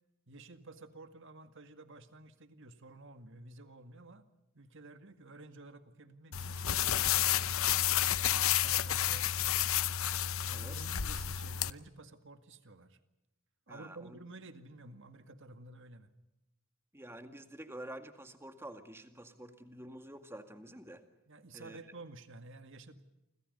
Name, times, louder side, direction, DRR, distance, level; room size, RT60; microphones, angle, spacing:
voice 1, 0.3-4.2 4.5-9.7 10.4-13.0 13.7-16.1 21.3-23.0, right 2 dB, 60° right, 9 dB, 2.0 m, -52 dB
sound 1, 6.3-11.7, left 11 dB, 70° left, 0.9 m, -30 dB
voice 2, 13.7-14.2 16.9-21.0 21.5-21.8, right 1 dB, 10° right, 7 dB, 2.1 m, -48 dB
29.0 x 26.0 x 5.5 m, 0.95 s
head